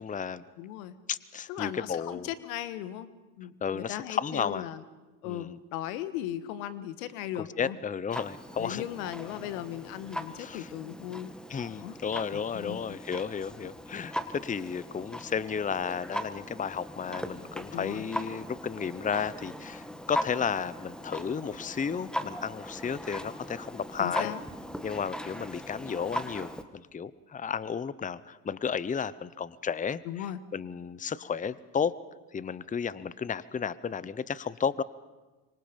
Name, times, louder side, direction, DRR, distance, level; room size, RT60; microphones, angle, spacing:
voice 1, 0.0-0.4 1.1-2.3 3.6-4.7 5.2-5.6 7.6-8.8 10.4-10.7 11.5-24.4 24.8-30.3 30.5-31.9 32.3-34.8, left 6 dB, 20° left, 18 dB, 0.8 m, -33 dB
voice 2, 0.6-0.9 1.5-3.1 3.4-4.8 5.2-7.8 8.6-11.3 11.7-12.0 12.3-12.8 17.7-18.1 24.0-24.4 30.0-30.4, left 12 dB, 85° left, 13 dB, 1.5 m, -37 dB
Clock, 8.1-26.6, equal, ahead, 1.7 m, -39 dB
27.0 x 24.5 x 5.3 m, 1.2 s
supercardioid pair, 85°, 41 cm